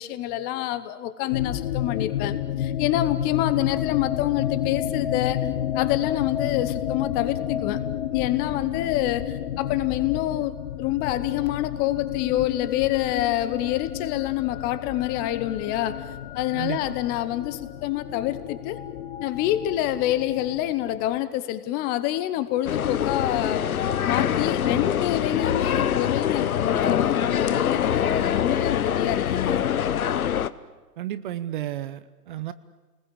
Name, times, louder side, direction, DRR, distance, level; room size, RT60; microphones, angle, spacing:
voice 1, 0.0-5.5 5.7-7.8 8.1-10.5 10.8-16.1 16.3-18.8 19.2-23.7 24.0-29.7, left 14 dB, 20° left, 13 dB, 0.9 m, -27 dB
sound 1, 1.3-21.2, left 10 dB, 40° left, 1.3 m, -31 dB
voice 2, 16.5-17.0 31.0-32.5, right 12 dB, 35° right, 15 dB, 0.7 m, -32 dB
sound 2, 22.7-30.5, left 9 dB, 65° left, 1.1 m, -24 dB
29.5 x 20.5 x 8.6 m, 1.3 s
figure-of-eight pair, 130°, 46 cm